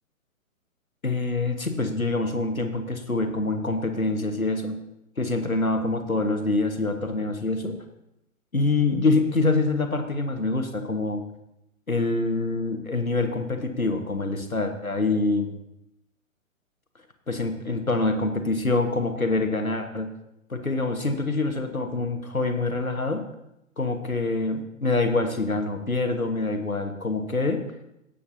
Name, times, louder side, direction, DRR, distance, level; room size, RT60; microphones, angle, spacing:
voice 1, 1.0-4.8 5.2-7.8 8.5-11.2 11.9-15.5 17.3-20.1 20.5-23.3 23.8-27.6, left 3 dB, 90° left, 6 dB, 1.5 m, -25 dB
17.5 x 8.5 x 2.7 m, 0.85 s
figure-of-eight pair, 125°, 41 cm